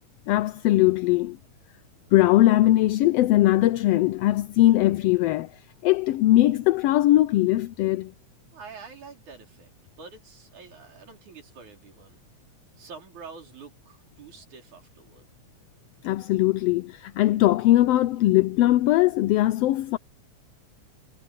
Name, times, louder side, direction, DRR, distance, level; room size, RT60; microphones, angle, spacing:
voice 1, 0.3-1.4 2.1-8.1 16.0-20.0, left 15 dB, 75° left, 1.5 m, -20 dB
voice 2, 8.5-9.7 10.0-12.2 12.8-15.2, right 5 dB, 85° right, 6.1 m, -46 dB
omnidirectional pair, 3.3 m